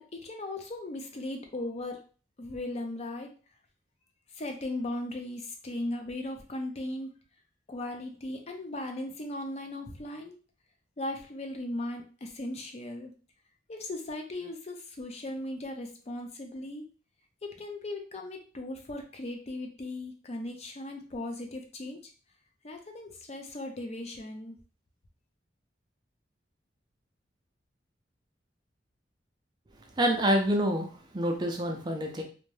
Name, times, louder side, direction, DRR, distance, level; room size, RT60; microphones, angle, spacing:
voice 1, 0.0-2.0 2.4-3.3 4.3-7.1 7.7-10.3 11.0-13.1 13.7-16.9 17.4-22.0 22.6-24.6, left 1 dB, 35° left, 4 dB, 0.4 m, -37 dB
voice 2, 30.0-32.2, equal, 25° right, 3 dB, 0.4 m, -27 dB
2.6 x 2.1 x 3.2 m, 0.37 s
head